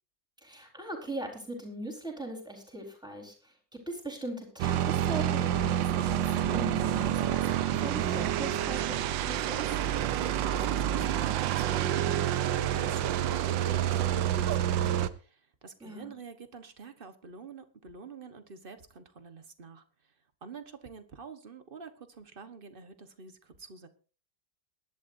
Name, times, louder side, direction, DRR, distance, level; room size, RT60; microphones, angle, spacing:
voice 1, 0.4-3.5 3.9-9.7 15.8-16.1, right 2 dB, ahead, 1 dB, 4.3 m, -40 dB
sound 1, 4.6-15.1, right 11 dB, 90° right, 1.5 m, -28 dB
voice 2, 10.2-19.8 20.4-23.9, right 4 dB, 35° right, 9 dB, 1.2 m, -47 dB
22.5 x 11.5 x 2.7 m, 0.37 s
omnidirectional pair, 2.0 m